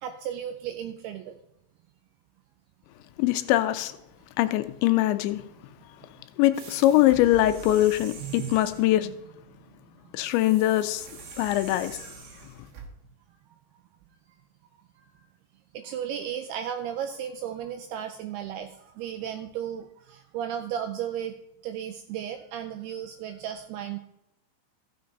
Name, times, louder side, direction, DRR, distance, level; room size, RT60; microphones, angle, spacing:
voice 1, 0.0-1.2 7.1-7.2 8.2-9.1 15.7-21.3 21.6-24.0, right 9 dB, 85° right, 2.3 m, -35 dB
voice 2, 3.2-3.9 4.4-5.4 6.4-9.1 10.1-11.0 11.4-12.0, left 14 dB, 85° left, 3.0 m, -22 dB
sound 1, 6.5-9.0 10.2-12.9, right 5 dB, 65° right, 3.2 m, -45 dB
14.5 x 6.7 x 4.0 m
omnidirectional pair, 5.1 m